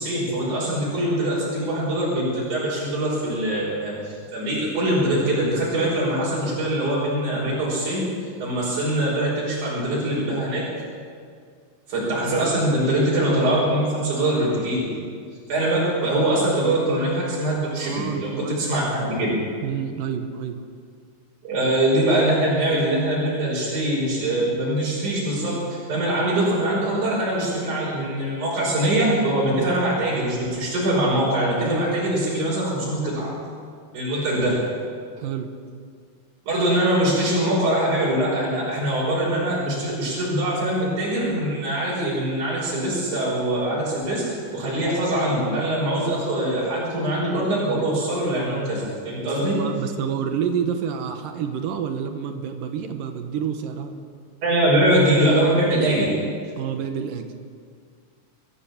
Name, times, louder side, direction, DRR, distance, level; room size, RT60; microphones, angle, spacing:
voice 1, 0.0-8.1 8.4-10.7 11.9-14.9 15.5-19.3 21.4-33.3 33.9-34.6 36.5-49.6 54.4-56.2, right 1 dB, 65° right, -7 dB, 7.0 m, -23 dB
voice 2, 17.8-18.6 19.6-20.6 35.2-35.5 49.2-53.9 56.6-57.3, right 7 dB, 90° right, 6 dB, 2.9 m, -28 dB
24.0 x 15.5 x 7.3 m, 2.1 s
omnidirectional pair, 3.7 m